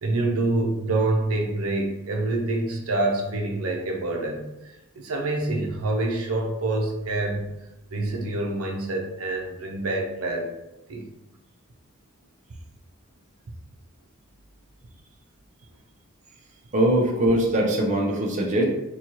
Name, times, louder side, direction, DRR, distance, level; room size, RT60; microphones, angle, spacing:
voice 1, 0.0-7.4 7.9-10.5 10.9-11.1, right 2 dB, 80° right, 1 dB, 0.6 m, -26 dB
voice 2, 16.7-18.6, right 1 dB, 35° right, -1 dB, 0.6 m, -21 dB
4.2 x 2.3 x 3.0 m, 0.94 s
head